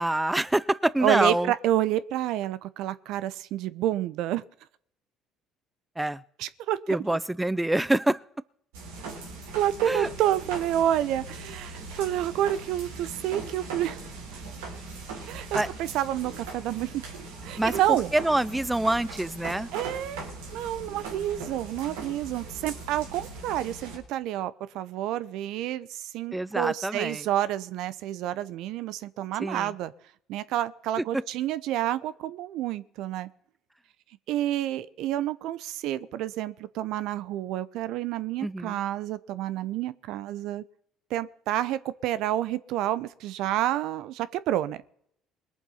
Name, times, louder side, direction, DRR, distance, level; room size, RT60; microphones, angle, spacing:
voice 1, 0.0-1.5 6.0-6.2 6.9-8.2 9.9-10.1 15.5-15.7 17.6-17.7 18.1-19.7 26.3-27.2 29.4-29.7 38.4-38.8, right 1 dB, 10° right, 20 dB, 0.5 m, -26 dB
voice 2, 1.0-4.4 6.4-7.2 9.5-14.0 14.3-14.4 15.3-17.0 17.4-18.1 19.7-20.2 20.5-29.9 30.3-33.3 34.3-40.6 41.1-44.8, right 12 dB, 70° right, 16 dB, 0.7 m, -29 dB
sound 1, 8.7-24.0, right 3 dB, 85° right, 3.1 m, -40 dB
21.0 x 7.3 x 5.6 m, 0.66 s
hypercardioid pair, 65°, 0 cm